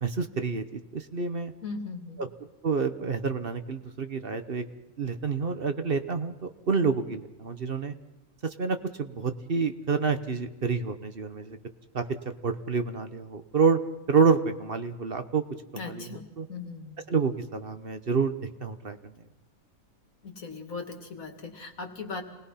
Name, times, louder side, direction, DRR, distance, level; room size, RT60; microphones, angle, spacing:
voice 1, 0.0-1.5 2.2-2.3 2.6-4.6 5.0-7.9 8.4-11.6 11.9-12.0 12.4-13.8 14.1-15.4 15.7-16.1 16.4-16.5 17.1-18.3 18.6-19.1, right 5 dB, 45° right, 8 dB, 1.2 m, -28 dB
voice 2, 1.6-2.2 15.7-17.0 20.2-22.2, left 4 dB, 80° left, 4 dB, 2.7 m, -38 dB
27.0 x 19.5 x 5.7 m, 1.1 s
omnidirectional pair, 1.4 m